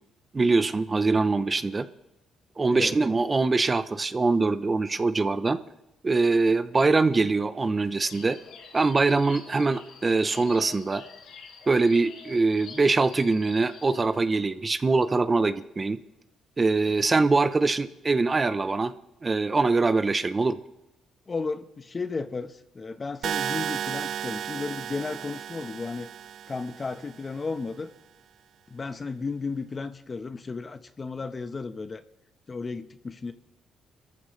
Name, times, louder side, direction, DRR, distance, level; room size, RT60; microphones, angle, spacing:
voice 1, 0.3-1.9 2.6-5.6 6.0-8.4 8.7-11.0 11.7-16.0 16.6-18.9 19.2-20.6, right 3 dB, 25° right, 12 dB, 0.8 m, -23 dB
sound 1, 8.0-14.0, left 5 dB, 80° left, 4.1 m, -47 dB
voice 2, 21.3-26.1 26.5-27.9 28.7-32.0 32.5-33.3, left 4 dB, 30° left, 10 dB, 1.2 m, -34 dB
sound 2, 23.2-27.3, right 9 dB, 70° right, 0.5 m, -34 dB
28.0 x 14.5 x 3.3 m, 0.94 s
cardioid pair, 90°, 0 cm